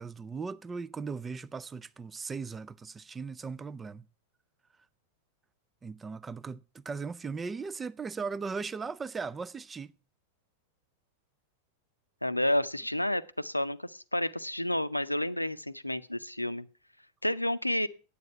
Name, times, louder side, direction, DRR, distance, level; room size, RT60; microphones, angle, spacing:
voice 1, 0.0-4.0 5.8-10.0, right 5 dB, 15° right, 0.4 m, -38 dB
voice 2, 12.2-16.7 17.2-17.9, left 1 dB, 85° left, 0.5 m, -30 dB
9.6 x 8.4 x 5.7 m
figure-of-eight pair, 90°, 0 cm